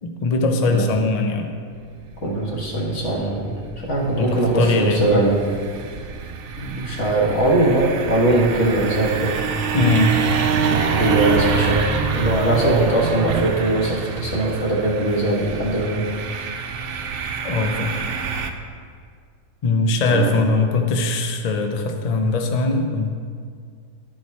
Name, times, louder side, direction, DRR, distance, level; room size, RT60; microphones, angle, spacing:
voice 1, 0.0-1.5 4.2-5.1 9.7-10.2 17.4-18.0 19.6-23.2, left 2 dB, 70° left, 4 dB, 0.3 m, -21 dB
voice 2, 0.5-0.9 2.2-3.5 3.8-5.4 6.6-9.3 11.0-11.8 12.1-16.0 20.1-20.3, right 1 dB, 55° left, -4 dB, 1.8 m, -21 dB
sound 1, 1.7-18.5, right 6 dB, 70° right, 0.5 m, -26 dB
11.0 x 4.7 x 4.2 m, 2.1 s
omnidirectional pair, 1.5 m